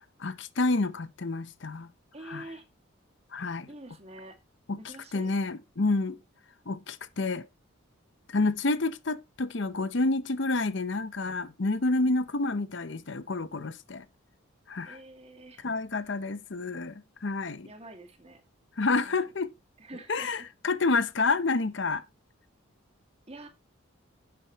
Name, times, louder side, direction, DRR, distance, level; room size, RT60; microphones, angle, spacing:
voice 1, 0.0-1.9 2.3-2.4 3.3-3.7 4.7-4.8 5.1-6.2 6.7-7.5 8.3-14.1 14.7-15.0 15.6-17.7 18.8-19.5 20.1-22.0, left 3 dB, 55° left, 0.8 m, -29 dB
voice 2, 2.1-2.6 3.7-4.4 4.7-5.3 14.8-15.6 17.6-18.4 18.9-19.3 19.8-20.5 23.3-23.5, right 1 dB, 30° right, 2.2 m, -46 dB
11.5 x 8.8 x 3.0 m
head